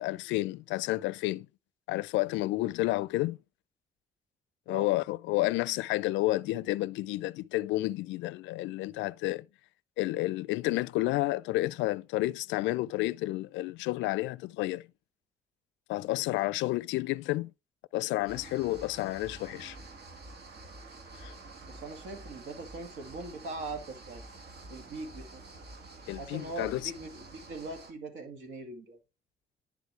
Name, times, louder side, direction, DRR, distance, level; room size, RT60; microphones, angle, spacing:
voice 1, 0.0-1.5 1.9-3.4 4.7-9.5 10.0-14.9 15.9-17.5 17.9-19.8 21.2-21.3 26.1-26.8, left 18 dB, 75° left, 0.4 m, -30 dB
sound 1, 18.3-27.9, right 2 dB, 60° right, 2.3 m, -48 dB
voice 2, 21.7-24.2 24.7-25.4 26.2-29.0, right 3 dB, 75° right, 2.4 m, -41 dB
10.5 x 5.0 x 3.3 m
hypercardioid pair, 50°, 19 cm